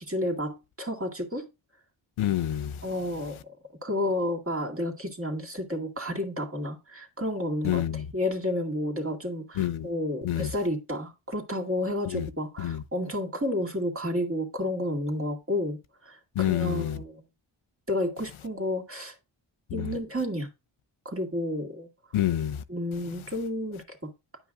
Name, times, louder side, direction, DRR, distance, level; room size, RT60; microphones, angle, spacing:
voice 1, 0.0-1.5 2.8-3.6 3.8-17.2 17.9-19.2 19.7-20.5 21.1-21.9 22.7-24.1, left 1 dB, 25° right, 2.0 m, -31 dB
voice 2, 2.2-2.8 7.6-8.0 9.6-9.9 10.2-10.5 12.1-12.3 12.6-12.8 16.4-17.0 19.7-19.9 22.1-22.6, left 12 dB, 75° left, 0.6 m, -27 dB
9.8 x 5.5 x 2.4 m
cardioid pair, 50°, 49 cm